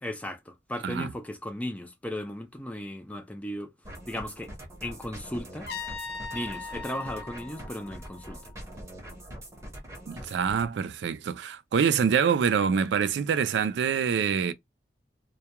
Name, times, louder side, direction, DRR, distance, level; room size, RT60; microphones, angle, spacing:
voice 1, 0.0-3.7 4.1-4.5 4.8-5.7 6.3-8.5, left 1 dB, 10° left, 0.4 m, -36 dB
sound 1, 3.8-10.7, equal, 15° right, 0.8 m, -43 dB
Trumpet, 5.7-8.6, left 5 dB, 60° left, 0.6 m, -40 dB
voice 2, 10.1-14.5, right 7 dB, 75° right, 0.3 m, -25 dB
2.2 x 2.2 x 2.8 m
head